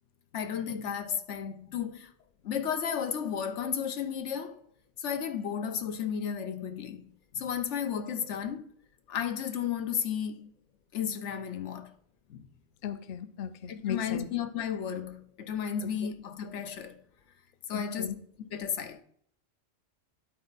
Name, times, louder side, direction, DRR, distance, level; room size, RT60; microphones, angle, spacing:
voice 1, 0.3-2.1 2.4-4.6 5.0-7.0 7.3-8.7 9.1-10.5 10.9-11.9 12.3-12.4 13.7-17.0 17.7-18.1 18.5-19.0, left 8 dB, 80° left, 1.1 m, -33 dB
voice 2, 12.8-14.4 17.7-18.1, left 8 dB, 55° left, 0.6 m, -36 dB
11.5 x 4.4 x 4.0 m
omnidirectional pair, 1.2 m